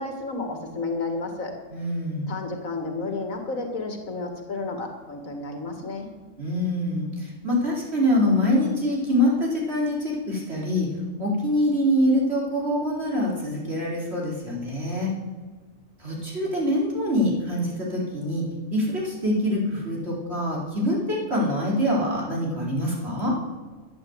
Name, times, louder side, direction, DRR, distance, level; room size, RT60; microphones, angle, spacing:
voice 1, 0.0-1.5 2.3-6.1, left 3 dB, 90° left, 4 dB, 2.3 m, -31 dB
voice 2, 1.7-2.3 6.4-10.9 11.2-15.1 16.0-23.3, left 1 dB, 50° right, -3 dB, 4.3 m, -25 dB
12.5 x 9.1 x 7.9 m, 1.4 s
omnidirectional pair, 1.4 m